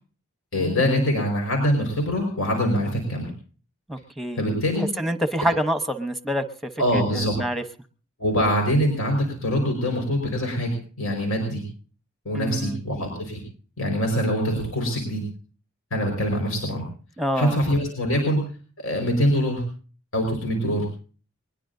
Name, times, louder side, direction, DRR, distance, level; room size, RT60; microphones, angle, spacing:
voice 1, 0.5-3.3 4.3-4.9 6.8-7.3 8.2-11.6 12.2-13.4 13.8-15.2 15.9-16.8 17.3-18.4 18.8-19.6 20.1-20.8, equal, 80° left, 2 dB, 5.1 m, -24 dB
voice 2, 3.9-6.4 6.9-7.6 12.3-12.8 17.2-17.5, equal, ahead, 8 dB, 1.0 m, -27 dB
21.5 x 21.0 x 2.7 m, 0.40 s
head